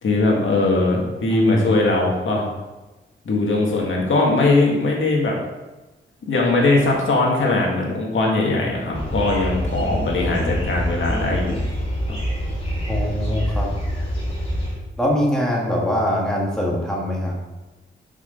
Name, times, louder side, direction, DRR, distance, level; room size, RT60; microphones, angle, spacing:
voice 1, 0.0-2.5 3.3-5.4 6.3-11.6 12.1-12.2, left 2 dB, 65° left, -1 dB, 2.1 m, -20 dB
voice 2, 1.3-1.8 12.9-13.7 15.0-17.4, left 1 dB, 5° left, -3 dB, 1.8 m, -23 dB
sound 1, 8.9-14.7, equal, 25° left, 3.1 m, -26 dB
11.0 x 6.2 x 3.9 m, 1.1 s
wide cardioid pair, 180°, 21 cm